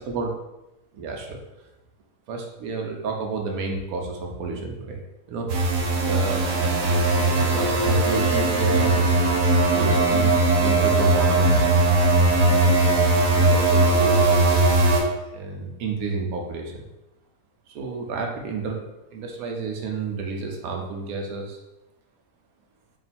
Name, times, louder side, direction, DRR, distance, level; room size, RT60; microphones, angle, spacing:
voice 1, 0.9-1.4 2.3-5.0 5.3-5.5 5.9-6.4 6.8-9.1 9.7-11.9 12.5-12.9 13.3-14.2 15.3-16.9 17.7-21.6, right 4 dB, 70° right, 2 dB, 1.0 m, -31 dB
sound 1, 5.5-15.0, right 2 dB, 85° right, 1.3 m, -19 dB
3.7 x 2.4 x 4.1 m, 0.96 s
omnidirectional pair, 1.7 m